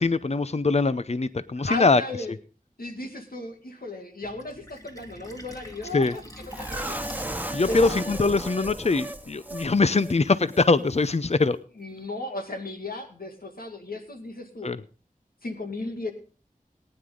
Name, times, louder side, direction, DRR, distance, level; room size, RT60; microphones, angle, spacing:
voice 1, 0.0-2.0 5.9-6.1 7.5-11.6 14.6-14.8, left 3 dB, 45° left, 15 dB, 0.6 m, -22 dB
voice 2, 1.6-2.3 2.8-7.0 7.7-7.9 11.8-14.7 15.4-16.1, left 2 dB, 90° left, 3 dB, 2.3 m, -35 dB
Fill (with liquid), 4.2-8.2, equal, 25° left, 2.8 m, -43 dB
sound 1, 6.5-9.7 10.0-10.1 10.5-10.6, right 1 dB, 10° right, 1.3 m, -34 dB
19.0 x 9.7 x 3.8 m, 0.36 s
wide cardioid pair, 40°, 15 cm